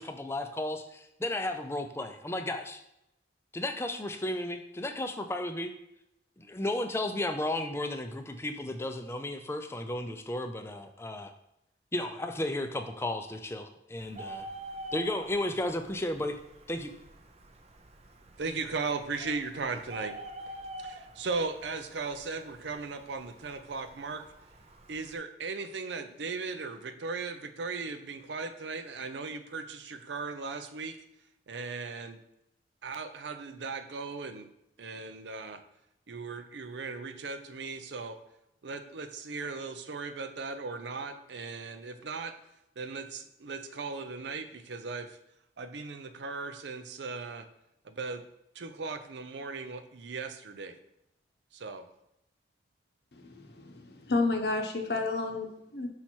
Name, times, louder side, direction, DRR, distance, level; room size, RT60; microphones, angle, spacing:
voice 1, 0.0-2.8 3.5-5.7 6.4-11.3 11.9-14.5 14.9-16.4 16.7-16.9, left 1 dB, 15° left, 7 dB, 0.4 m, -34 dB
Bird, 14.0-25.2, right 1 dB, 35° right, 0.5 m, -47 dB
voice 2, 18.4-20.2 20.4-24.3 24.9-31.0 31.5-32.2 32.8-34.5 34.8-35.6 36.1-38.2 38.6-42.3 42.8-45.2 45.6-47.5 47.8-48.2 48.5-50.7 51.5-51.9, right 4 dB, 75° right, 8 dB, 0.6 m, -37 dB
voice 3, 53.1-55.9, left 3 dB, 60° left, 4 dB, 0.8 m, -31 dB
5.7 x 4.4 x 4.4 m, 0.83 s
head